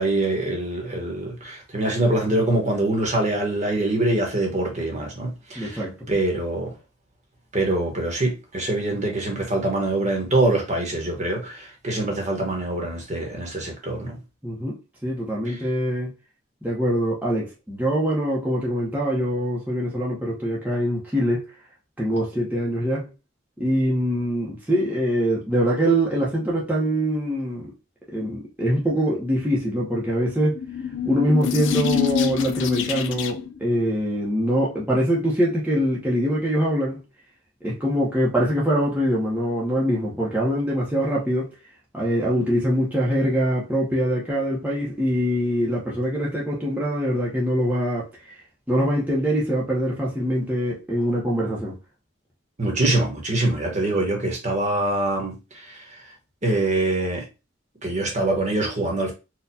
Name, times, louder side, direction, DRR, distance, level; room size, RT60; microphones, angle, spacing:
voice 1, 0.0-5.8 6.1-6.7 7.5-14.2 15.5-15.6 52.6-55.8 56.4-57.2 57.8-59.1, right 2 dB, 40° right, 1.1 m, -24 dB
voice 2, 5.6-5.9 14.4-16.1 16.6-21.5 22.0-23.1 23.6-27.7 28.1-30.6 31.0-37.0 37.6-41.6 41.9-48.3 48.7-51.8, equal, 10° right, 0.8 m, -23 dB
sound 1, 30.6-33.6, left 8 dB, 65° left, 0.4 m, -25 dB
4.3 x 2.3 x 2.7 m
head